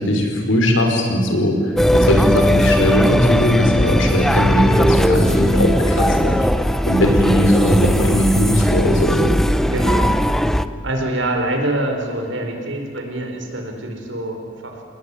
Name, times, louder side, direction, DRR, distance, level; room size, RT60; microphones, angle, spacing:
voice 1, 0.0-6.5 6.9-9.4, equal, 80° left, 3 dB, 5.3 m, -18 dB
sound 1, 1.8-10.7, equal, ahead, 0.7 m, -18 dB
voice 2, 9.7-10.2 10.8-14.4 14.6-14.8, right 1 dB, 75° right, 3 dB, 4.8 m, -24 dB
29.0 x 19.0 x 9.9 m, 2.3 s
head